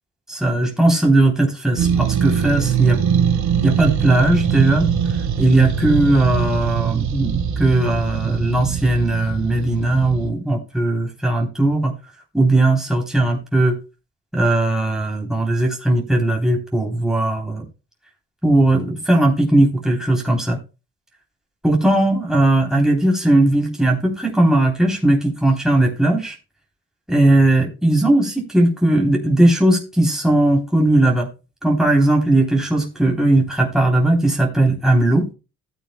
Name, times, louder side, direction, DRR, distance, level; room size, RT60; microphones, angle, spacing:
voice 1, 0.3-3.0 3.6-4.9 5.4-11.9 12.3-13.7 14.3-17.6 18.4-20.6 21.6-26.3 27.1-31.3 31.6-35.3, right 2 dB, ahead, -1 dB, 3.4 m, -18 dB
sound 1, 1.8-10.3, right 8 dB, 70° right, 1.6 m, -22 dB
15.0 x 9.0 x 2.2 m, 0.30 s
cardioid pair, 90°, 30 cm